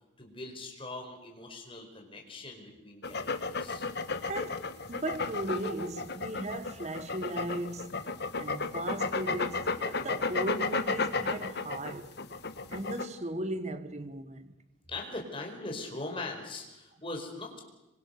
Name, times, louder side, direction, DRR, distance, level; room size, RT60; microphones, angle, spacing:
voice 1, 0.2-3.9 14.9-17.6, left 2 dB, 25° left, 4.9 m, -41 dB
sound 1, 3.0-13.0, left 4 dB, 50° left, 1.4 m, -33 dB
voice 2, 4.2-8.0 8.4-12.2 12.7-14.5, right 1 dB, 35° right, 1.4 m, -37 dB
27.0 x 24.0 x 6.7 m
head